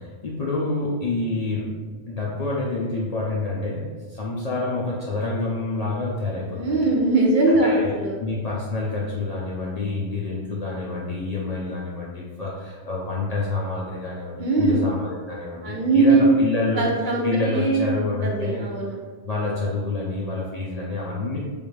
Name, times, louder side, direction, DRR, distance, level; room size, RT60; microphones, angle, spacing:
voice 1, 0.0-6.9 7.6-16.9 17.2-18.7 19.2-21.4, left 2 dB, 55° left, -4 dB, 0.4 m, -28 dB
voice 2, 6.5-8.2 14.4-14.9 15.6-16.3 16.8-19.0, right 3 dB, 60° right, -2 dB, 0.6 m, -21 dB
3.3 x 2.4 x 3.1 m, 1.4 s
omnidirectional pair, 1.1 m